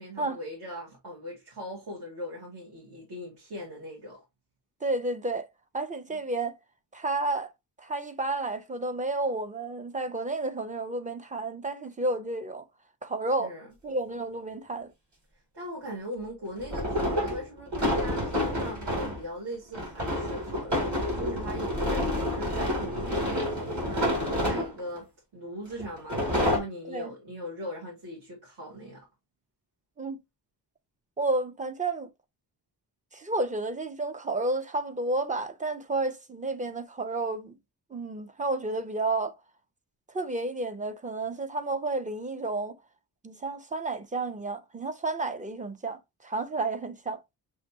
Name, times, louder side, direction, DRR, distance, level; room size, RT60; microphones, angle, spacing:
voice 1, 0.0-4.2 6.1-6.2 13.4-13.7 15.5-29.0, equal, 65° right, 1.7 m, -40 dB
voice 2, 4.8-5.5 5.7-6.5 6.9-7.5 7.8-12.6 13.0-13.5 13.8-14.9 24.4-24.6 26.9-27.1 30.0-30.2 31.2-32.1 33.1-37.5 37.9-39.3 40.1-42.8 43.2-47.2, right 2 dB, 20° right, 0.4 m, -31 dB
sound 1, 13.9-14.0 16.6-19.2 19.7-25.0 25.8-26.6, left 1 dB, 40° right, 2.3 m, -28 dB
6.3 x 2.6 x 2.7 m
wide cardioid pair, 150°, 42 cm